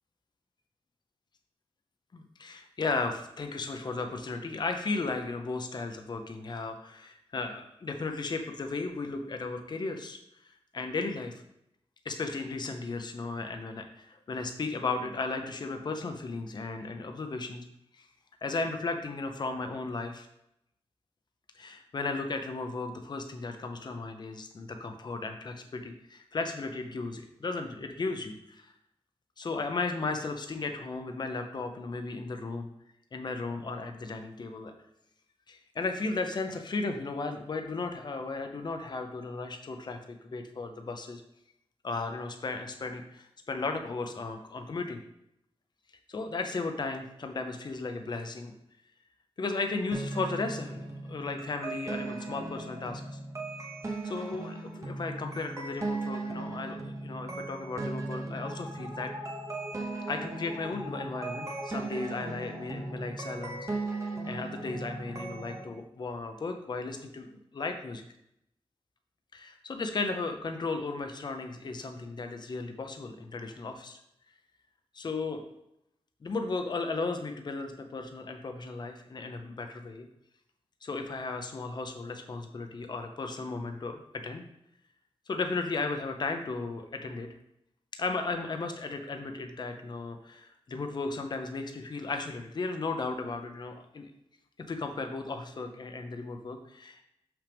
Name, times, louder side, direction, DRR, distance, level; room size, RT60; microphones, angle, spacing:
voice 1, 2.1-10.2 10.4-11.4 12.0-17.7 17.9-18.1 18.4-20.3 21.5-28.7 29.4-32.7 33.1-34.7 35.5-41.2 41.8-45.0 46.1-48.5 49.4-50.8 51.1-53.2 54.0-59.1 60.1-63.9 64.2-67.3 67.5-68.0 69.3-74.0 74.9-75.4 76.2-80.1 80.8-84.4 85.3-87.3 87.9-94.1 94.6-97.0, left 3 dB, 45° left, 5 dB, 0.7 m, -35 dB
sound 1, 49.9-65.6, right 2 dB, 30° right, 1.1 m, -37 dB
6.4 x 5.9 x 3.5 m, 0.78 s
wide cardioid pair, 130°, 10 cm